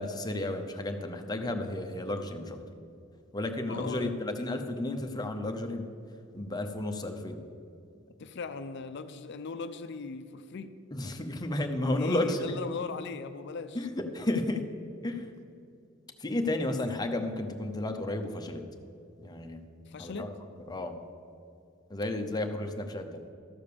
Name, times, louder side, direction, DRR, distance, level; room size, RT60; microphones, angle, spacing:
voice 1, 0.0-2.6 3.3-5.9 6.3-7.4 10.9-12.6 13.7-14.6 15.0-15.3 16.2-18.6 19.2-19.6 20.0-20.3 20.7-21.0 21.9-23.2, left 1 dB, 20° left, 5 dB, 0.8 m, -32 dB
voice 2, 3.7-4.2 8.2-10.7 11.8-13.8 16.6-16.8 19.9-20.4, left 4 dB, 60° left, 10 dB, 0.5 m, -38 dB
13.5 x 5.1 x 6.9 m, 2.5 s
head